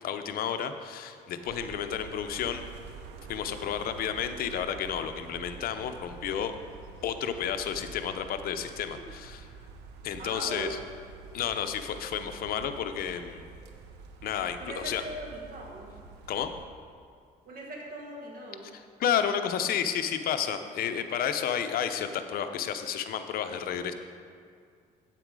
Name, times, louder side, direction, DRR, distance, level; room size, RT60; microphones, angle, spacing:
voice 1, 0.0-2.6 3.3-6.5 7.0-9.5 10.0-10.8 11.3-13.4 14.2-15.0 16.3-16.5 19.0-23.9, left 8 dB, 60° left, 8 dB, 0.7 m, -31 dB
windy forest and squeaky gate, 1.4-16.7, right 5 dB, 85° right, 0.8 m, -47 dB
voice 2, 10.2-10.7 14.6-15.9 17.4-18.7, right 2 dB, 60° right, -1 dB, 1.6 m, -40 dB
8.4 x 7.7 x 4.8 m, 2.2 s
cardioid pair, 110°, 17 cm